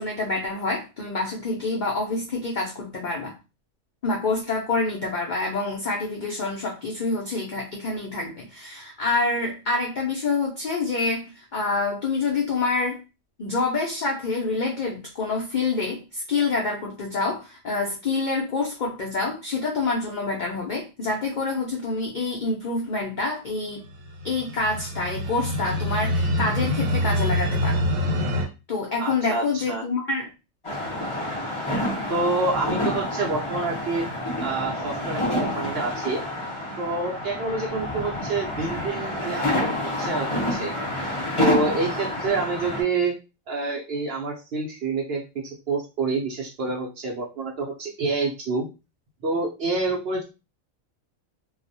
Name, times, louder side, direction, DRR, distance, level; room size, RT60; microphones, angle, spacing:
voice 1, 0.0-3.3 4.0-13.0 13.4-23.8 24.2-27.8 28.7-30.3, left 3 dB, 75° left, -1 dB, 0.4 m, -27 dB
sound 1, 23.9-28.4, left 1 dB, 85° right, 1.1 m, -25 dB
voice 2, 29.0-29.8 32.1-34.1 34.4-36.2 36.8-39.7 40.0-40.7 41.4-43.1 43.5-48.7 49.2-50.2, right 3 dB, 60° right, -1 dB, 0.7 m, -27 dB
sound 2, 30.6-42.8, left 1 dB, 30° left, 0.7 m, -28 dB
2.3 x 2.0 x 2.6 m, 0.29 s
omnidirectional pair, 1.4 m